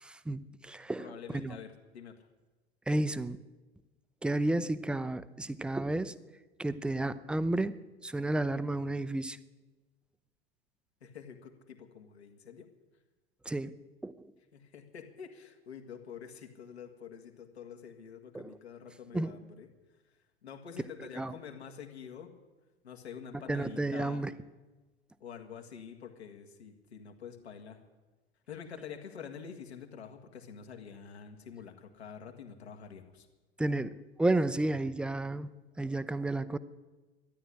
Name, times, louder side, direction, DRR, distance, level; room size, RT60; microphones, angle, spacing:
voice 1, 0.0-1.6 2.9-3.4 4.2-6.2 6.6-7.8 8.0-9.4 13.5-13.7 14.0-14.1 18.3-18.6 19.1-19.3 21.2-21.3 23.5-24.3 33.6-35.5 35.8-36.6, right 2 dB, 5° right, 14 dB, 0.5 m, -32 dB
voice 2, 1.0-2.2 11.0-12.7 14.5-19.7 20.4-22.3 22.8-24.3 25.2-27.8 28.5-33.3, left 7 dB, 75° left, 3 dB, 1.9 m, -47 dB
13.0 x 10.5 x 9.9 m, 1.2 s
figure-of-eight pair, 80°, 33 cm